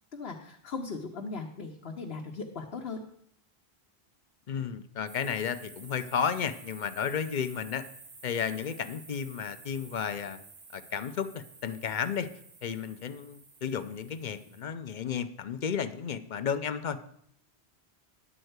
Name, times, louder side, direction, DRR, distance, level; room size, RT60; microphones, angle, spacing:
voice 1, 0.1-3.0, left 4 dB, 70° left, 0 dB, 1.1 m, -38 dB
voice 2, 4.5-7.8 8.2-10.4 10.7-12.3 12.6-17.1, left 7 dB, 55° left, 11 dB, 0.7 m, -33 dB
sound 1, 5.1-14.6, right 3 dB, 80° right, 1.7 m, -52 dB
11.0 x 4.4 x 7.9 m, 0.69 s
omnidirectional pair, 1.1 m